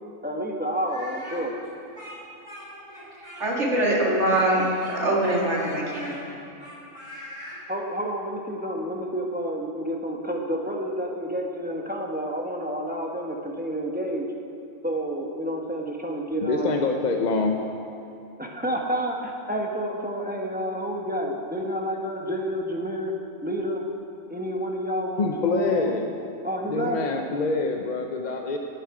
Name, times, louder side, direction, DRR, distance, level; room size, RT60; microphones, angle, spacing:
voice 1, 0.2-1.6 7.7-14.3 14.8-16.8 18.4-23.1 23.4-23.8 24.3-26.0 26.4-27.0, equal, 10° right, -1 dB, 1.0 m, -29 dB
Speech, 0.8-3.7 4.3-7.6, equal, 30° right, 3.5 m, -42 dB
voice 2, 3.4-6.2, right 1 dB, 60° right, -4 dB, 2.5 m, -23 dB
voice 3, 16.4-17.6 25.2-26.1 26.7-28.6, left 3 dB, 45° left, 3 dB, 0.6 m, -25 dB
18.0 x 7.6 x 4.9 m, 2.7 s
omnidirectional pair, 1.4 m